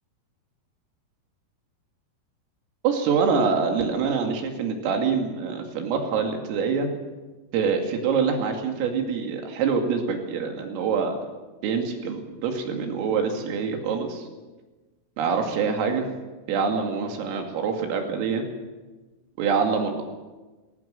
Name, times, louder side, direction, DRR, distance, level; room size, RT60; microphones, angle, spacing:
voice 1, 2.8-6.9 7.5-11.2 11.6-14.3 15.2-16.1 16.5-18.4 19.4-20.0, right 5 dB, 80° right, 3 dB, 5.0 m, -25 dB
20.0 x 18.5 x 7.6 m, 1.2 s
omnidirectional pair, 5.8 m